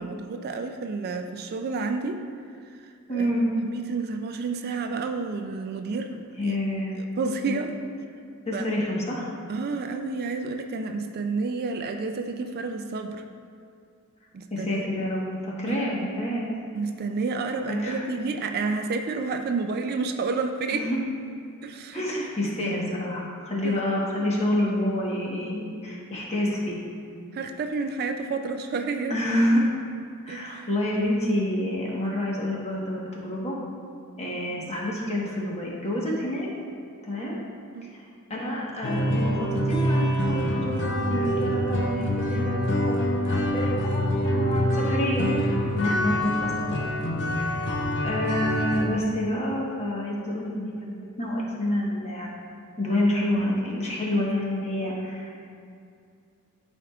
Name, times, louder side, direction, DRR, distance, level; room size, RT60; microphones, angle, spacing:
voice 1, 0.0-2.2 3.1-3.3 3.7-6.5 7.2-7.8 8.5-8.6 9.5-13.2 14.3-14.9 15.7-15.8 16.7-20.9 21.6-22.0 23.6-23.8 27.3-29.2 30.3-30.7 37.7-37.9, right 4 dB, 45° right, 6 dB, 0.3 m, -30 dB
voice 2, 3.1-3.5 6.4-6.9 7.5-7.6 8.5-9.3 14.5-16.5 17.7-18.0 20.7-21.0 21.9-26.8 28.9-29.6 30.3-33.6 34.2-36.5 37.0-37.4 37.9-38.0 38.3-46.9 47.4-52.4 52.8-55.5, left 1 dB, 30° left, -4 dB, 1.2 m, -28 dB
sound 1, 38.8-48.9, equal, 55° left, 0.7 m, -25 dB
12.0 x 4.6 x 2.4 m, 2.3 s
head